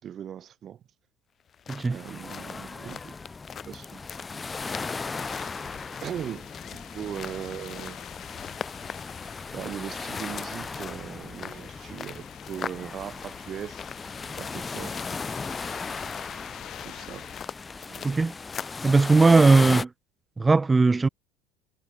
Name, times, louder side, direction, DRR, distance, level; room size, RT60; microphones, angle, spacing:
voice 1, 0.0-0.8 1.9-3.1 3.7-4.0 5.3-5.5 6.0-8.1 9.5-13.9 14.4-15.1 16.8-17.3 17.8-18.2, right 9 dB, 45° right, 5.3 m, -39 dB
sound 1, 1.4-18.9, left 7 dB, 40° left, 5.6 m, -43 dB
voice 2, 1.7-2.0 18.0-18.3 18.8-19.9 20.4-21.1, right 3 dB, 20° right, 1.5 m, -18 dB
sound 2, 1.9-19.9, left 4 dB, 25° left, 1.3 m, -37 dB
sound 3, 5.1-17.5, left 12 dB, 55° left, 2.8 m, -46 dB
hypercardioid pair, 75°, 0 cm